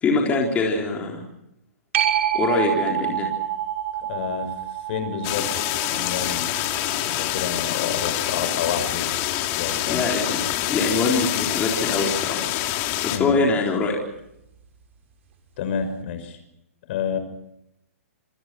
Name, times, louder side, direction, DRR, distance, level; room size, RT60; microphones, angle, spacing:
voice 1, 0.0-1.2 2.3-3.3 9.9-12.5 13.0-14.0, left 3 dB, 15° left, -1 dB, 3.9 m, -23 dB
sound 1, 1.9-9.1 14.6-14.7, right 11 dB, 55° right, 6.0 m, -29 dB
voice 2, 4.1-4.5 4.9-6.5 7.0-10.1 13.1-13.3 15.6-16.4 16.9-17.2, left 7 dB, 50° left, 9 dB, 5.8 m, -29 dB
sound 2, 5.2-13.2, left 14 dB, 35° left, 2.5 m, -26 dB
27.5 x 23.5 x 6.2 m, 0.82 s
hypercardioid pair, 145°, 8 cm